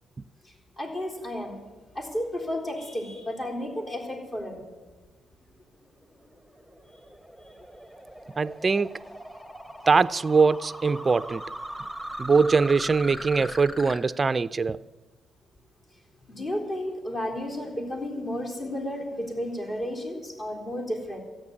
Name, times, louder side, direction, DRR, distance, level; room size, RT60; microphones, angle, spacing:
voice 1, 0.4-1.6 1.9-4.7 16.3-21.2, left 1 dB, 40° left, 3.8 m, -32 dB
sound 1, 5.9-14.0, equal, 10° left, 1.5 m, -40 dB
voice 2, 8.4-8.9 9.9-11.4 12.2-14.8, right 4 dB, 30° right, 0.4 m, -22 dB
14.0 x 9.0 x 9.7 m
cardioid pair, 90°, 0 cm